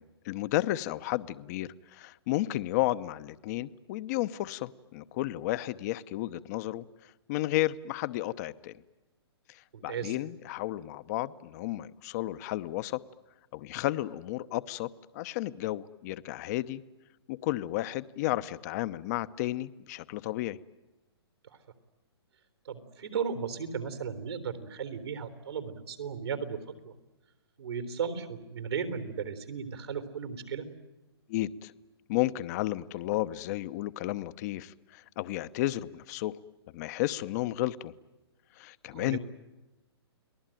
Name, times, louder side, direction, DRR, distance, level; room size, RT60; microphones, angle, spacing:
voice 1, 0.0-6.8 7.3-8.7 9.5-13.0 13.5-16.8 17.3-20.6 31.3-31.7 32.1-36.3 36.7-37.9 38.6-39.2, left 16 dB, 40° left, 14 dB, 0.8 m, -32 dB
voice 2, 9.7-10.2 21.5-21.6 22.7-26.6 26.8-26.9 27.6-30.7 38.9-39.2, right 6 dB, 75° right, 10 dB, 3.8 m, -35 dB
30.0 x 20.0 x 9.1 m, 1.0 s
hypercardioid pair, 135°, 14 cm